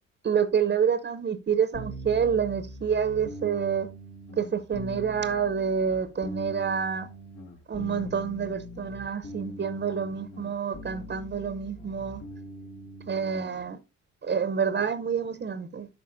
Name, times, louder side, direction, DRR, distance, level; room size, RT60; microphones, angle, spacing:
voice 1, 0.2-3.9 4.4-7.1 7.7-12.2 13.1-13.8 14.2-15.9, right 7 dB, 35° right, 0.7 m, -28 dB
sound 1, 1.7-13.6, equal, 75° left, 2.4 m, -42 dB
11.5 x 4.9 x 2.6 m
cardioid pair, 90°, 30 cm